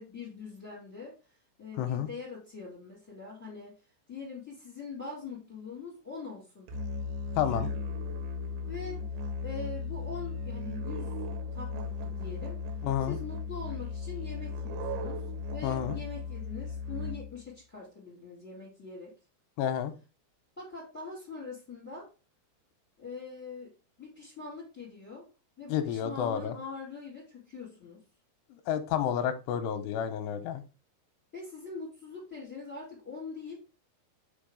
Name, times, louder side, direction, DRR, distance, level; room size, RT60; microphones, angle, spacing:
voice 1, 0.0-3.7 4.1-6.7 8.7-9.1 9.4-11.1 11.5-12.6 13.0-15.2 15.5-19.1 20.6-22.1 23.0-23.7 24.0-25.2 25.6-28.0 31.3-33.6, left 4 dB, 5° left, -6 dB, 3.4 m, -43 dB
voice 2, 1.8-2.1 7.4-7.7 12.8-13.2 15.6-15.9 19.6-19.9 25.7-26.6 28.5-30.6, left 9 dB, 90° left, 10 dB, 2.8 m, -30 dB
Musical instrument, 6.7-17.5, left 3 dB, 85° right, 3.2 m, -36 dB
5.5 x 5.4 x 5.1 m, 0.32 s
omnidirectional pair, 5.0 m